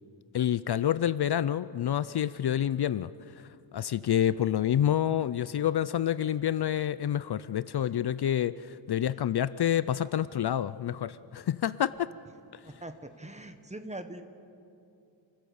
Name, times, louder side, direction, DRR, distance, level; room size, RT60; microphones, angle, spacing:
voice 1, 0.3-3.1 3.4-12.1, left 10 dB, 60° left, 16 dB, 0.5 m, -28 dB
voice 2, 12.6-14.2, right 1 dB, 15° right, 8 dB, 1.1 m, -42 dB
28.0 x 15.5 x 7.1 m, 2.6 s
wide cardioid pair, 130°, 44 cm